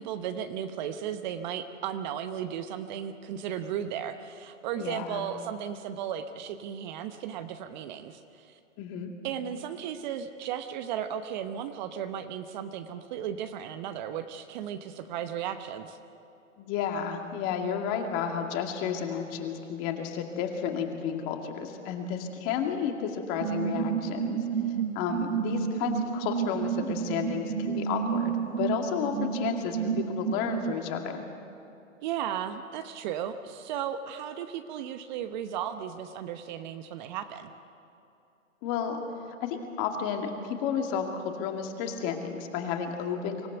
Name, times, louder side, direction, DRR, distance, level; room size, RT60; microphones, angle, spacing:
voice 1, 0.0-8.6 9.2-16.0 32.0-37.5, right 9 dB, 35° right, 9 dB, 0.9 m, -35 dB
voice 2, 4.8-5.2 8.8-9.1 16.6-24.4 24.9-31.3 38.6-39.0 39.4-43.5, left 7 dB, 30° left, 3 dB, 2.3 m, -32 dB
sound 1, 23.4-30.7, right 7 dB, 80° right, 1.1 m, -31 dB
25.0 x 15.5 x 8.0 m, 2.8 s
hypercardioid pair, 130°, 39 cm